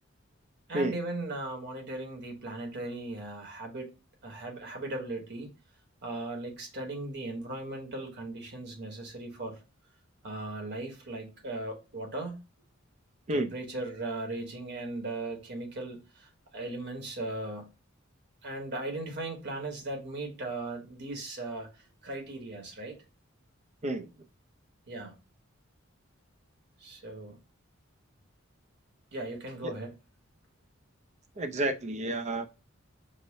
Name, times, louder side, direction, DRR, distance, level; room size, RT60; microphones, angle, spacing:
voice 1, 0.7-3.9 4.2-5.5 6.0-9.6 10.2-12.4 13.3-17.7 18.4-23.0 24.9-25.1 26.8-27.4 29.1-29.9, right 2 dB, 55° right, 1.3 m, -38 dB
voice 2, 31.4-32.5, right 1 dB, 35° right, 0.5 m, -30 dB
5.4 x 2.1 x 4.0 m
head